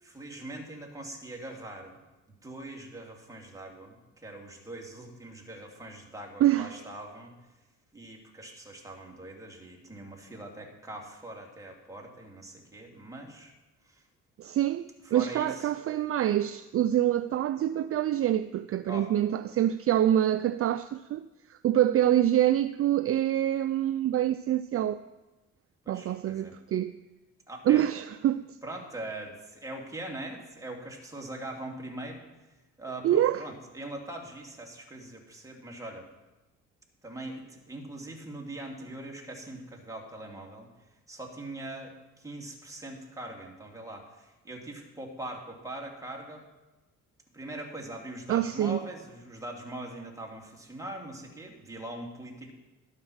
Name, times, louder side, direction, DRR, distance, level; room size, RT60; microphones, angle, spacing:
voice 1, 0.0-2.0 2.4-7.3 7.9-13.5 13.9-14.0 15.0-15.7 18.9-19.1 25.8-26.5 27.5-27.8 28.6-32.2 32.8-36.1 37.0-40.7 41.1-46.5 47.3-52.5, right 1 dB, 10° right, 2.6 m, -42 dB
voice 2, 6.4-6.7 14.4-25.0 25.9-27.0 27.7-28.4 33.0-33.4 48.3-48.8, right 12 dB, 50° right, 0.4 m, -26 dB
12.0 x 7.5 x 6.3 m
cardioid pair, 90°, 30 cm